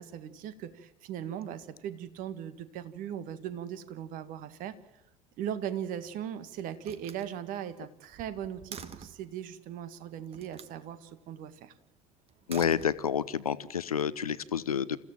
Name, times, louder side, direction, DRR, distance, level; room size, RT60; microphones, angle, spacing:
voice 1, 0.0-4.8 5.4-11.7, right 9 dB, 50° right, 12 dB, 1.8 m, -39 dB
Slam, 5.7-6.3 6.8-9.3 10.3-10.8 12.3-13.4, right 7 dB, 35° right, 1.6 m, -47 dB
voice 2, 12.5-15.0, left 8 dB, 80° left, 17 dB, 0.8 m, -29 dB
28.0 x 15.5 x 7.5 m, 0.92 s
figure-of-eight pair, 65°, 18 cm